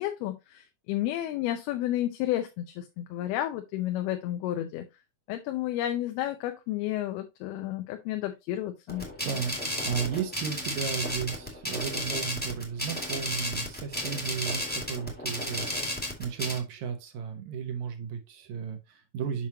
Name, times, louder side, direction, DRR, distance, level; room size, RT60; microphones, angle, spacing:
voice 1, 0.0-4.8 5.3-9.1, left 13 dB, 85° left, 2.7 m, -31 dB
sound 1, 8.9-16.6, equal, 5° left, 0.8 m, -33 dB
voice 2, 9.2-19.5, right 7 dB, 70° right, 1.9 m, -34 dB
7.3 x 6.1 x 2.8 m
omnidirectional pair, 4.4 m